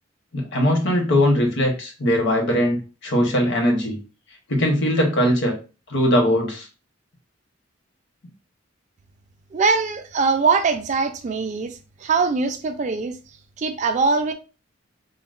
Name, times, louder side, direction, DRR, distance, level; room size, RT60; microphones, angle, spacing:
voice 1, 0.3-4.0 4.5-5.5 5.9-6.7, equal, 60° left, 0.9 m, -20 dB
voice 2, 9.5-13.2 13.6-14.3, right 4 dB, 35° right, 0.3 m, -22 dB
3.7 x 2.0 x 2.4 m
head